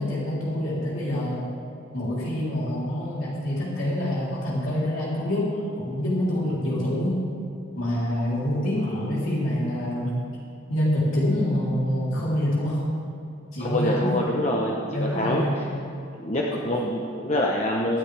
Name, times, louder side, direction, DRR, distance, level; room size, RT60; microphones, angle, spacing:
voice 1, 0.0-1.4 1.9-5.5 5.8-7.2 7.7-10.2 10.7-12.8 13.5-14.1 14.9-15.5 16.5-16.6, left 1 dB, 75° left, -8 dB, 3.7 m, -26 dB
voice 2, 13.6-15.6 16.2-18.0, left 1 dB, 35° left, -2 dB, 1.0 m, -25 dB
23.0 x 10.5 x 3.5 m, 2.6 s
head